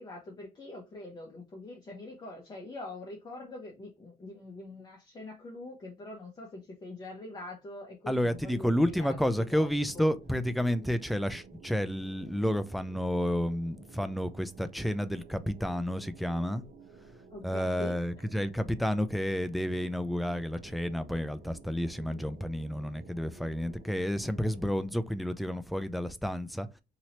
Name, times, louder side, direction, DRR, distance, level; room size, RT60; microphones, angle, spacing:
voice 1, 0.0-10.1 17.3-18.0, left 2 dB, 25° left, 0.9 m, -44 dB
voice 2, 8.1-16.6 17.4-26.7, equal, ahead, 0.3 m, -30 dB
sound 1, 8.2-24.9, right 4 dB, 55° right, 1.0 m, -53 dB
2.9 x 2.7 x 3.0 m
cardioid pair, 110°, 17 cm